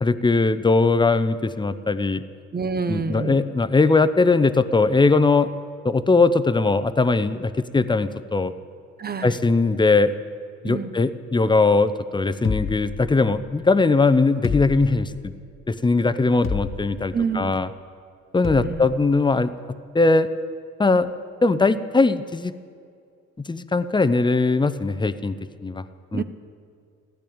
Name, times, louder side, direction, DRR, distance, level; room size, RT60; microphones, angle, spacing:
voice 1, 0.0-2.2 2.9-5.5 5.8-8.5 9.2-10.1 10.6-15.3 15.7-17.7 18.3-19.5 19.9-20.3 20.8-21.1 21.4-22.5 23.4-25.3 25.6-25.8 26.1-26.2, left 3 dB, 15° left, 12 dB, 0.7 m, -20 dB
voice 2, 2.5-3.4 9.0-9.3 10.6-10.9 17.1-17.7 18.6-18.9 26.1-26.2, right 5 dB, 30° right, 11 dB, 0.9 m, -27 dB
sound 1, 12.4-13.6 14.4-15.3 16.4-17.1 18.4-18.9, left 6 dB, 45° left, 1.0 m, -30 dB
15.5 x 10.5 x 8.7 m, 2.3 s
cardioid pair, 90°, 30 cm